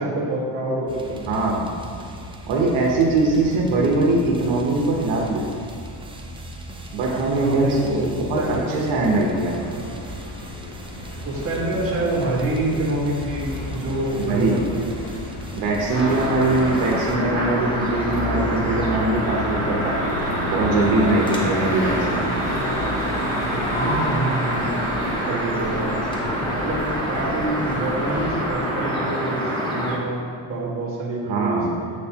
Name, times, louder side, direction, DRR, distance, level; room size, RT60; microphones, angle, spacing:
voice 1, 0.0-1.2 7.4-8.7 9.7-9.9 11.2-15.1 23.7-24.9 25.3-26.0 26.6-31.9, right 2 dB, 30° right, -6 dB, 1.6 m, -27 dB
sound 1, 0.9-17.2, equal, 10° right, 0.5 m, -38 dB
voice 2, 1.3-1.7 2.5-5.5 6.9-7.8 8.2-9.6 14.2-14.6 15.6-20.0 20.5-22.3 31.3-31.8, right 2 dB, 70° right, -1 dB, 1.1 m, -21 dB
sound 2, 9.0-28.6, left 1 dB, 80° left, 1.8 m, -33 dB
sound 3, 15.9-30.0, equal, 10° left, 0.9 m, -26 dB
7.8 x 6.5 x 2.9 m, 2.3 s
cardioid pair, 145°, 47 cm